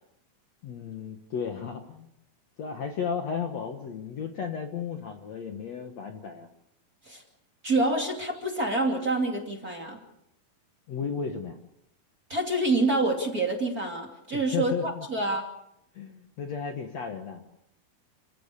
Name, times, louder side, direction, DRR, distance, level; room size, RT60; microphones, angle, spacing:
voice 1, 0.6-2.1 2.6-6.5 10.9-11.6 14.3-15.1 15.9-17.4, left 6 dB, 55° left, 4 dB, 2.2 m, -34 dB
voice 2, 7.6-10.0 12.3-15.4, right 2 dB, 25° right, 1 dB, 2.5 m, -27 dB
29.5 x 16.0 x 7.0 m, 0.81 s
omnidirectional pair, 4.6 m